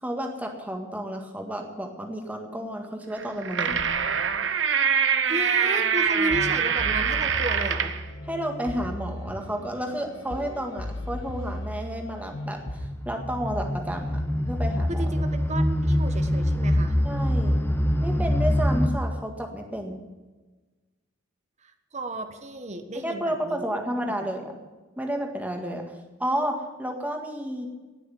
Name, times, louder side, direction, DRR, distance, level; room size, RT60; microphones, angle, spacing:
voice 1, 0.0-3.9 8.2-14.2 14.5-15.0 17.0-17.6 18.0-20.0 22.9-24.6 25.0-25.8 26.2-27.7, equal, 10° right, 2 dB, 1.8 m, -31 dB
sound 1, 3.2-8.0, right 7 dB, 65° right, 1.0 m, -24 dB
voice 2, 5.2-7.9 14.9-16.9 21.6-23.8, right 2 dB, 35° right, 8 dB, 1.2 m, -33 dB
sound 2, 6.1-12.9, left 1 dB, 80° left, 1.4 m, -36 dB
sound 3, 12.6-18.9, equal, 10° left, 1.1 m, -24 dB
18.5 x 6.5 x 9.1 m, 1.3 s
head